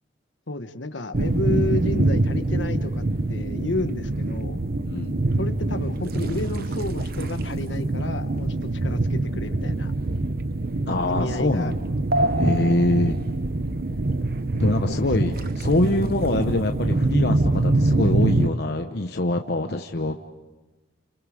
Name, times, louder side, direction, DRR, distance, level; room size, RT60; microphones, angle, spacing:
voice 1, 0.5-4.6 5.3-9.9 11.0-11.7 12.6-13.1 14.9-15.0 15.3-15.6, left 2 dB, 75° left, 9 dB, 1.3 m, -32 dB
sound 1, 1.1-18.5, right 2 dB, 50° right, 0.9 m, -24 dB
voice 2, 4.8-5.1 10.9-11.8 12.3-13.2 14.6-20.1, left 1 dB, 60° left, 4 dB, 1.0 m, -24 dB
29.5 x 29.0 x 5.1 m, 1.2 s
head